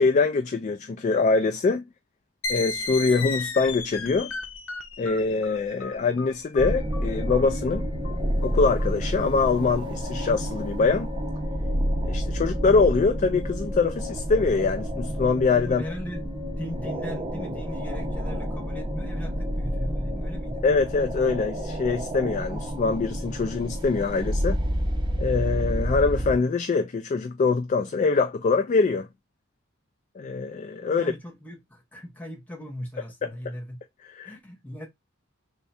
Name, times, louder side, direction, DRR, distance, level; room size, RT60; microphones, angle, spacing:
voice 1, 0.0-1.8 2.5-4.3 5.0-7.9 8.4-11.1 12.0-15.8 20.6-24.6 25.2-29.1 30.2-31.1 33.2-33.3 34.2-34.4, left 4 dB, 35° left, 0.3 m, -24 dB
sound 1, 2.4-9.7, left 4 dB, 70° left, 0.8 m, -35 dB
sound 2, 6.6-26.4, equal, 25° right, 0.7 m, -29 dB
voice 2, 15.7-20.6 30.9-33.8 34.2-34.9, left 1 dB, 5° left, 0.9 m, -39 dB
3.5 x 2.2 x 4.0 m
head